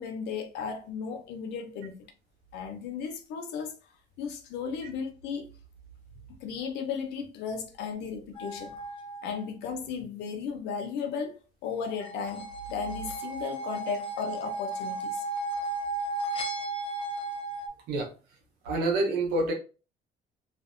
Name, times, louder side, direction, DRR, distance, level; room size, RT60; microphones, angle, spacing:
voice 1, 0.0-2.1 2.5-3.8 4.2-5.5 6.4-8.7 9.2-15.2, left 6 dB, 85° left, 0.6 m, -35 dB
sound 1, 8.4-9.4 11.9-17.7, right 2 dB, 30° left, 0.5 m, -35 dB
voice 2, 18.6-19.5, right 2 dB, 85° right, 0.9 m, -27 dB
2.5 x 2.0 x 2.4 m
cardioid pair, 110°, 17 cm